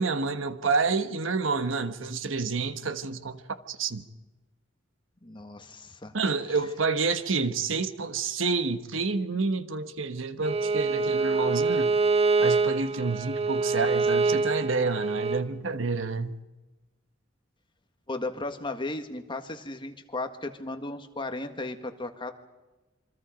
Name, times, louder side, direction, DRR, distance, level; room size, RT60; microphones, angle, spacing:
voice 1, 0.0-4.0 6.1-12.0 12.4-16.4, right 4 dB, 85° right, 1.3 m, -29 dB
voice 2, 5.2-6.1 18.1-22.3, left 2 dB, 25° left, 1.8 m, -35 dB
Bowed string instrument, 10.4-15.4, right 4 dB, 35° right, 1.1 m, -25 dB
27.5 x 25.0 x 5.2 m
head